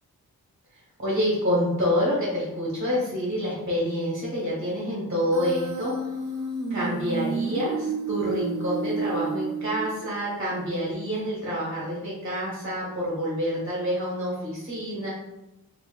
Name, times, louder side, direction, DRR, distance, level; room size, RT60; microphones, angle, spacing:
voice 1, 1.0-5.9 6.7-15.1, equal, 35° right, -6 dB, 1.3 m, -27 dB
Human voice, 5.3-10.3, right 4 dB, 55° right, 0.9 m, -31 dB
4.2 x 2.8 x 2.4 m, 0.93 s
wide cardioid pair, 120°, 37 cm